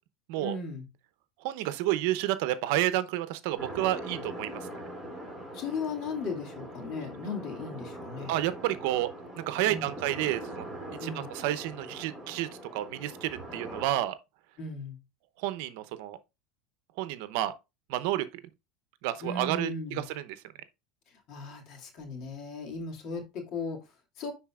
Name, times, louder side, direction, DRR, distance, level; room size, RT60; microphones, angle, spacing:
voice 1, 0.4-0.9 5.5-8.3 9.6-9.9 11.0-11.3 14.6-15.0 19.2-20.1 21.1-24.3, left 4 dB, 55° left, 2.2 m, -37 dB
voice 2, 1.4-4.6 8.3-9.1 9.5-10.6 11.0-14.2 15.4-16.2 17.0-17.5 17.9-18.3 19.0-20.2, right 14 dB, 70° right, 0.7 m, -30 dB
sound 1, 3.6-13.9, right 1 dB, 5° right, 4.3 m, -42 dB
9.9 x 4.0 x 2.4 m
supercardioid pair, 130°, 0 cm